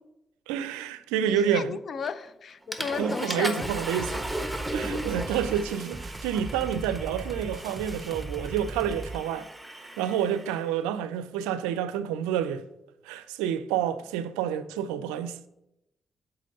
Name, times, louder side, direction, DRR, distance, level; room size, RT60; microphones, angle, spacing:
voice 1, 0.5-1.8 2.8-4.2 4.7-9.5 10.0-12.6 13.0-15.4, right 9 dB, 85° right, 0.4 m, -29 dB
voice 2, 1.2-3.7, left 6 dB, 55° left, 0.6 m, -34 dB
Water / Toilet flush, 2.0-2.3 2.7-10.6, right 1 dB, 5° right, 1.3 m, -37 dB
sound 1, 3.6-9.2, right 3 dB, 25° right, 0.7 m, -38 dB
7.4 x 4.1 x 6.6 m
hypercardioid pair, 40°, 0 cm